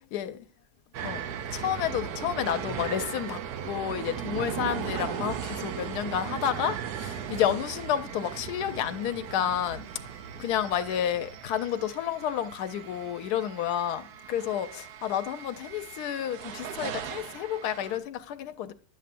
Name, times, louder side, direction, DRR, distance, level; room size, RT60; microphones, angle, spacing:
sound 1, 0.9-18.0, right 9 dB, 80° right, 1.2 m, -37 dB
voice 1, 1.5-18.7, left 10 dB, 80° left, 1.1 m, -30 dB
9.7 x 6.8 x 2.5 m
omnidirectional pair, 1.7 m